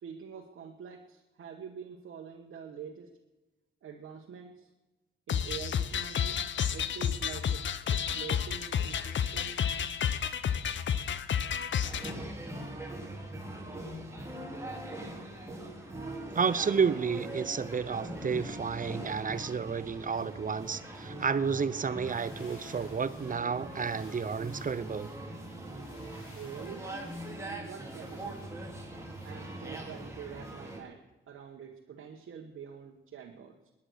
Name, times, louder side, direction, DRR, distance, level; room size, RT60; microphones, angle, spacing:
voice 1, 0.0-3.1 3.8-4.7 5.3-6.4 6.7-9.6 26.3-26.9 27.4-28.5 29.2-33.7, right 7 dB, 80° right, 0 dB, 1.5 m, -45 dB
sound 1, 5.3-12.1, left 8 dB, 65° left, 0.8 m, -31 dB
sound 2, 11.8-30.8, right 1 dB, 15° right, 3.8 m, -42 dB
voice 2, 16.3-25.1, right 6 dB, 40° right, 16 dB, 0.7 m, -31 dB
sound 3, 22.0-29.3, left 2 dB, 90° left, 5.2 m, -57 dB
20.0 x 10.0 x 6.4 m, 1.1 s
cardioid pair, 75°, 21 cm